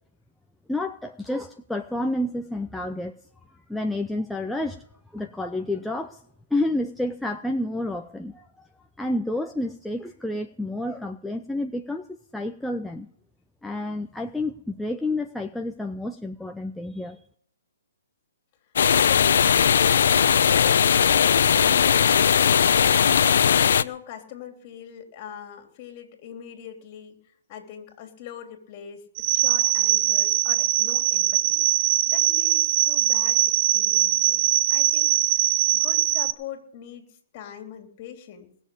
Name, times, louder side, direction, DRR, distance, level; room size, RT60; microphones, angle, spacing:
voice 1, 0.7-3.1 3.7-4.8 5.1-6.2 6.5-8.7 9.0-12.0 12.3-13.1 13.6-17.2, left 1 dB, ahead, 4 dB, 0.6 m, -29 dB
sound 1, 18.8-23.8, left 8 dB, 65° left, 0.7 m, -18 dB
voice 2, 19.0-19.4 23.5-27.1 27.5-38.5, left 9 dB, 35° left, 4 dB, 3.5 m, -42 dB
sound 2, 29.2-36.3, right 15 dB, 35° right, 0.7 m, -21 dB
20.0 x 7.1 x 8.6 m, 0.67 s
hypercardioid pair, 150°, 0 cm